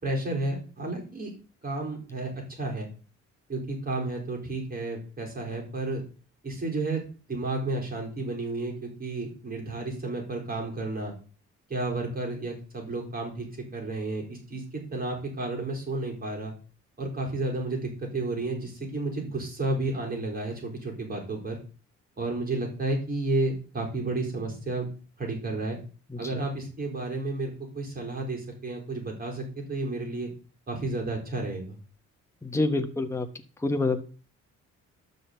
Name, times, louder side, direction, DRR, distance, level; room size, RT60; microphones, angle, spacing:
voice 1, 0.0-1.3 1.6-2.9 3.5-6.0 6.4-7.0 7.3-11.1 11.7-16.5 17.0-21.6 22.2-24.9 25.2-25.8 26.2-30.3 30.7-31.8, right 2 dB, 30° right, 0 dB, 4.4 m, -32 dB
voice 2, 32.4-33.3 33.6-34.0, left 2 dB, 10° left, 6 dB, 1.2 m, -27 dB
12.5 x 4.1 x 8.0 m, 0.37 s
cardioid pair, 90°, 30 cm